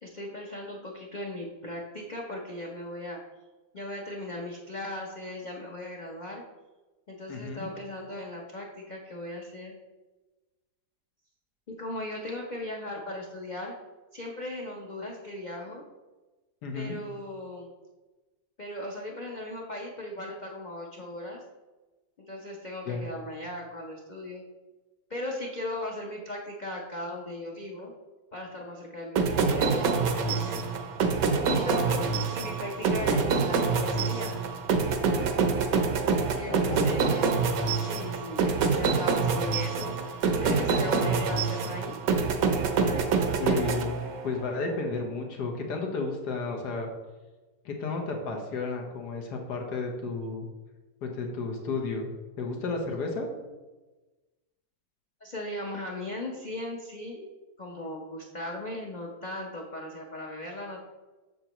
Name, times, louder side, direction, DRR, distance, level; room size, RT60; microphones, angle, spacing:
voice 1, 0.0-3.2 3.7-6.4 7.1-9.7 11.7-13.7 14.1-15.8 16.7-17.7 18.6-21.4 22.2-24.4 25.1-27.9 28.3-30.6 31.5-34.4 36.0-37.4 37.8-42.0 42.8-43.5 55.2-57.3 57.6-60.8, left 1 dB, 45° left, -1 dB, 0.6 m, -38 dB
voice 2, 7.3-7.7 16.6-17.0 22.9-23.1 36.5-37.0 43.4-46.9 47.6-50.5 51.0-52.1 52.4-53.3, left 3 dB, 85° left, 2 dB, 1.7 m, -32 dB
sound 1, 29.2-44.5, right 5 dB, 65° right, 1.1 m, -26 dB
7.5 x 6.7 x 3.0 m, 1.2 s
omnidirectional pair, 1.7 m